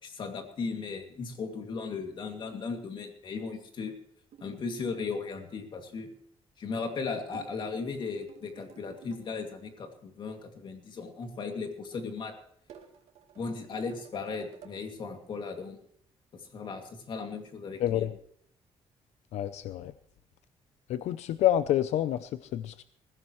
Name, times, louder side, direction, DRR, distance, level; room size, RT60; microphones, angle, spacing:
voice 1, 0.0-4.0 4.4-6.1 6.6-12.3 13.4-15.8 16.3-18.1, left 4 dB, 45° left, 4 dB, 2.4 m, -37 dB
sound 1, 4.3-5.0 7.3-9.3 12.7-14.8, right 7 dB, 85° right, 2.3 m, -53 dB
voice 2, 17.8-18.1 19.3-19.9 20.9-22.8, left 12 dB, 90° left, 13 dB, 0.6 m, -28 dB
20.5 x 15.5 x 3.1 m, 0.65 s
cardioid pair, 160°, 11 cm